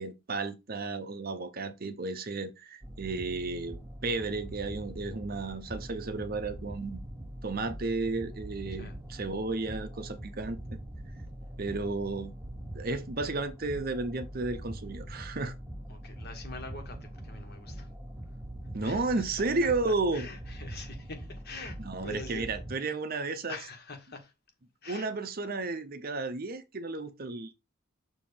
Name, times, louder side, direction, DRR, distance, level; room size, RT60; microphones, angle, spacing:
voice 1, 0.0-7.0 7.4-10.6 11.6-12.4 12.7-15.5 18.7-20.3 21.8-23.6 24.9-27.5, right 3 dB, 45° right, 0.8 m, -33 dB
sound 1, 2.8-22.7, right 1 dB, 10° right, 2.1 m, -43 dB
voice 2, 15.9-17.9 18.8-19.0 19.4-22.6 23.5-24.3 24.8-25.1, left 3 dB, 50° left, 1.5 m, -44 dB
6.9 x 2.8 x 5.2 m
head